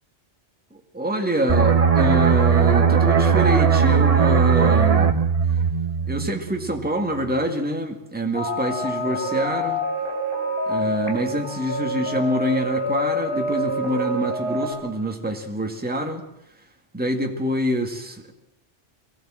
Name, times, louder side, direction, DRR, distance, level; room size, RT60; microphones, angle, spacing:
voice 1, 0.7-5.1 6.1-9.8 10.7-16.2 16.9-18.3, equal, 10° right, 3 dB, 2.0 m, -26 dB
sound 1, 1.5-6.9 7.2-7.4, right 6 dB, 35° right, 1.0 m, -18 dB
sound 2, 8.3-14.7, equal, 50° left, 4.6 m, -27 dB
22.5 x 17.0 x 7.6 m, 0.85 s
omnidirectional pair, 1.2 m